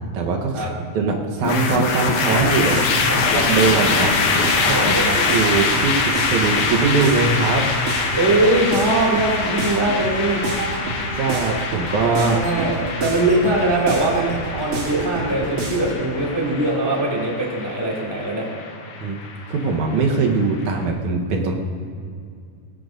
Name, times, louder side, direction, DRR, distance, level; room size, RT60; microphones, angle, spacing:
voice 1, 0.1-0.7 0.9-2.7 3.3-4.2 5.3-7.7 11.2-12.4 19.0-19.2 19.5-21.6, right 4 dB, 80° right, 1 dB, 2.5 m, -21 dB
sound 1, 1.4-20.7, left 4 dB, 85° left, 2.7 m, -24 dB
sound 2, 2.3-16.0, right 3 dB, 60° right, 2.4 m, -29 dB
voice 2, 4.6-5.3 8.1-10.4 12.3-18.5, right 2 dB, 10° right, -3 dB, 1.9 m, -21 dB
20.0 x 16.0 x 2.6 m, 2.3 s
omnidirectional pair, 3.4 m